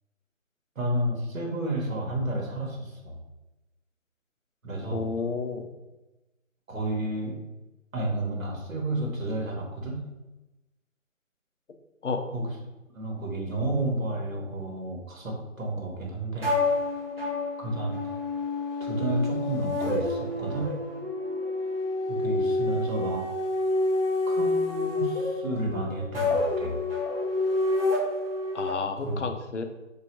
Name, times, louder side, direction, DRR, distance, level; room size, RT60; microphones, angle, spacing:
voice 1, 0.7-3.2 4.6-5.0 6.7-7.4 7.9-10.0 12.3-12.5 12.9-16.5 17.6-18.1 18.8-20.7 22.1-23.3 24.3-26.8 29.0-29.2, right 1 dB, 75° right, -1 dB, 1.3 m, -31 dB
voice 2, 4.9-5.7 12.0-12.2 28.5-29.6, left 4 dB, 60° left, 5 dB, 0.5 m, -30 dB
sound 1, 16.4-28.7, left 2 dB, 45° right, 0.8 m, -28 dB
3.0 x 2.6 x 4.3 m, 1.0 s
figure-of-eight pair, 175°, 40 cm